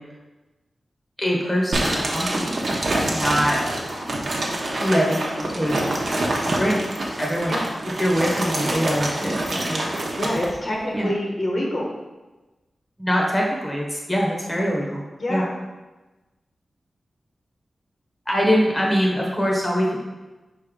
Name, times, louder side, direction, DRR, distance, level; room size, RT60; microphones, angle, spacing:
voice 1, 1.2-2.7 3.1-3.6 4.8-5.7 6.5-6.8 7.2-7.5 8.0-9.9 10.9-11.1 13.0-15.0 15.3-15.4 18.3-20.0, equal, 5° left, -3 dB, 1.1 m, -23 dB
sound 1, 1.7-10.5, right 1 dB, 60° right, 1.0 m, -26 dB
voice 2, 10.1-11.9 15.2-15.5, left 1 dB, 50° left, -2 dB, 1.3 m, -26 dB
5.4 x 3.7 x 5.2 m, 1.1 s
wide cardioid pair, 115°, 0 cm